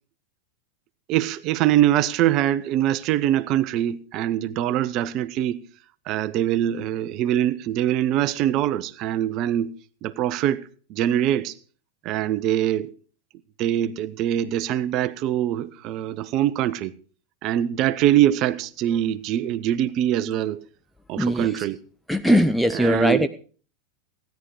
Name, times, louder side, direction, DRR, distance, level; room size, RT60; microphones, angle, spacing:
voice 1, 1.1-5.6 6.1-9.7 10.0-11.5 12.0-12.9 13.6-16.9 17.4-20.6 21.1-21.8 22.7-23.3, right 12 dB, 40° right, 0.7 m, -23 dB
voice 2, 21.2-21.7 22.1-23.3, equal, ahead, 0.6 m, -20 dB
16.0 x 10.5 x 4.8 m
figure-of-eight pair, 90°, 0 cm